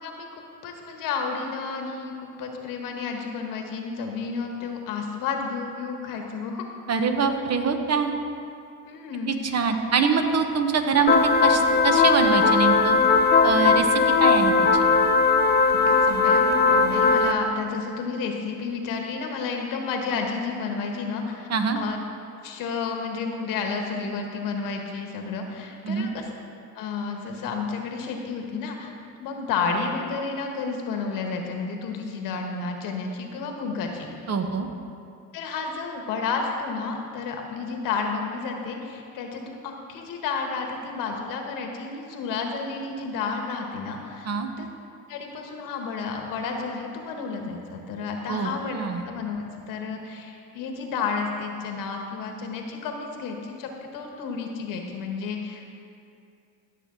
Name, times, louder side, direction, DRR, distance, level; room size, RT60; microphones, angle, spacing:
voice 1, 0.0-6.6 8.8-9.3 15.9-21.5 21.7-22.0 22.4-26.2 26.7-28.9 29.2-34.1 35.3-44.3 44.6-44.7 45.1-48.8 49.0-55.7, left 5 dB, 90° left, 3 dB, 1.3 m, -31 dB
voice 2, 6.9-8.1 9.3-13.0 13.4-14.9 21.5-21.8 25.8-26.1 34.3-34.7 44.3-44.5 48.3-49.0, right 5 dB, 50° right, 6 dB, 1.1 m, -24 dB
sound 1, 11.1-17.3, left 4 dB, 30° left, 0.8 m, -19 dB
15.0 x 6.6 x 3.8 m, 2.5 s
supercardioid pair, 75°, 32 cm